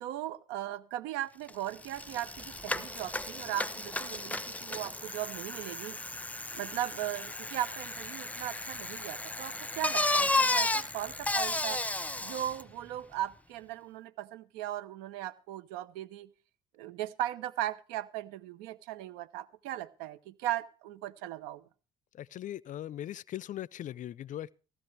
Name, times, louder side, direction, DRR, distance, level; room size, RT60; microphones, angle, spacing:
voice 1, 0.0-6.0 6.5-11.8 12.2-16.3 16.8-21.6, right 13 dB, 75° right, 0.9 m, -38 dB
Bicycle, 1.5-1.6 1.8-12.6, left 2 dB, 10° left, 0.9 m, -33 dB
voice 2, 22.1-24.5, left 12 dB, 50° left, 0.5 m, -39 dB
15.5 x 13.0 x 3.3 m
hypercardioid pair, 55°, 17 cm